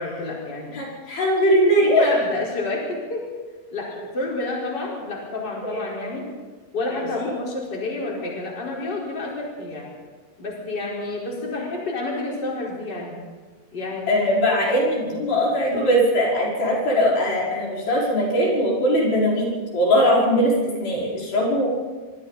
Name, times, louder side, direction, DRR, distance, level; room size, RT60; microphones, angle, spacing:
voice 1, 0.0-0.8 1.8-3.2 3.7-6.3 6.7-9.9 10.4-13.2 13.7-14.2, left 2 dB, 30° left, -3 dB, 5.1 m, -29 dB
voice 2, 0.7-2.1 5.6-5.8 7.2-7.3 14.1-19.5 19.7-21.7, equal, 85° left, -5 dB, 7.1 m, -20 dB
25.0 x 25.0 x 4.2 m, 1.4 s
omnidirectional pair, 4.1 m